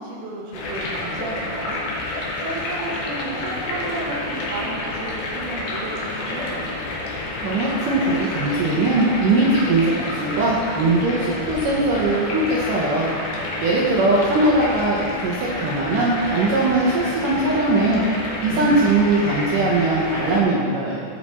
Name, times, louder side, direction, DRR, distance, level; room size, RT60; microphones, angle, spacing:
voice 1, 0.0-1.8 2.1-6.7 13.9-14.5, right 3 dB, 90° right, -4 dB, 3.8 m, -33 dB
sound 1, 0.5-20.4, left 2 dB, 85° left, 3.4 m, -29 dB
voice 2, 7.4-13.3 13.6-18.0 18.4-21.0, right 2 dB, 70° right, -5 dB, 2.2 m, -20 dB
14.5 x 5.0 x 4.3 m, 2.1 s
omnidirectional pair, 4.9 m